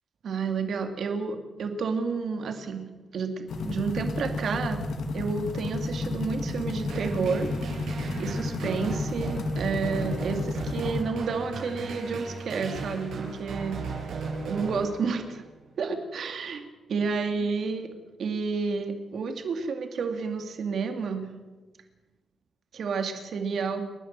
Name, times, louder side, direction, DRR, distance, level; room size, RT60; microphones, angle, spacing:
voice 1, 0.2-2.8 3.1-4.8 5.1-7.5 8.2-13.8 14.5-15.4 15.8-16.6 16.9-17.9 18.2-21.3 22.7-23.8, right 5 dB, 55° right, 6 dB, 2.5 m, -30 dB
sound 1, 3.5-11.0, left 3 dB, 65° left, 2.6 m, -32 dB
sound 2, 6.9-15.4, right 3 dB, 85° right, 7.8 m, -36 dB
29.5 x 11.5 x 7.6 m, 1.2 s
wide cardioid pair, 155°, 0 cm